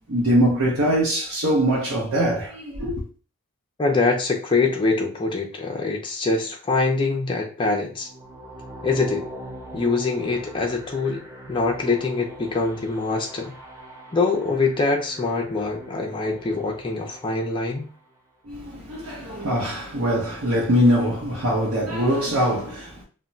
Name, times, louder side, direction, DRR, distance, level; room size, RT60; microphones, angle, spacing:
voice 1, 0.1-3.0 18.4-23.0, equal, 60° right, 0.7 m, -22 dB
voice 2, 3.8-8.1 8.8-9.2 9.7-13.5 14.1-17.9, left 3 dB, 20° left, 0.4 m, -24 dB
sound 1, 7.9-18.1, right 1 dB, 15° right, 0.8 m, -41 dB
2.2 x 2.1 x 3.8 m
head